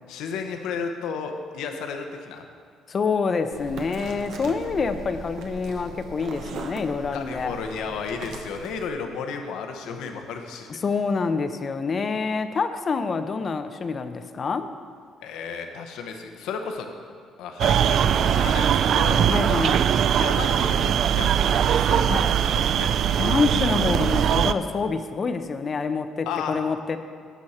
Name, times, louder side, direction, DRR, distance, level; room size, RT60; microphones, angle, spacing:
voice 1, 0.1-2.4 7.1-10.8 15.2-16.9 17.4-19.3 20.1-23.0 26.3-26.6, left 5 dB, 75° left, 5 dB, 1.0 m, -33 dB
voice 2, 2.9-7.6 10.8-14.7 19.3-19.9 22.1-22.2 23.1-27.0, left 4 dB, 30° left, 9 dB, 0.6 m, -26 dB
sound 1, 3.5-8.9, right 3 dB, 70° right, 1.2 m, -39 dB
sound 2, 17.6-24.5, right 9 dB, 55° right, 0.3 m, -21 dB
16.0 x 6.3 x 4.3 m, 2.1 s
cardioid pair, 150°, 0 cm